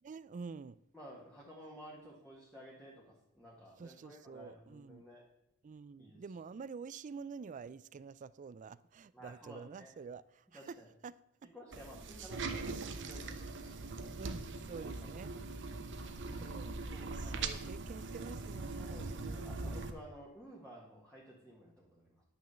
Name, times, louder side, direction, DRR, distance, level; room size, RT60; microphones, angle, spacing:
voice 1, 0.0-0.8 2.0-2.1 3.8-5.0 5.6-10.8 11.0-11.1 14.2-15.3 16.4-19.0, right 5 dB, 35° right, 0.3 m, -48 dB
voice 2, 0.9-5.2 6.0-6.2 9.1-9.9 10.5-10.9 11.5-14.0 15.0-15.1 16.9-17.5 18.8-22.2, equal, 5° left, 1.7 m, -54 dB
sound 1, 11.7-19.9, right 3 dB, 60° right, 0.9 m, -41 dB
10.0 x 6.1 x 7.0 m
head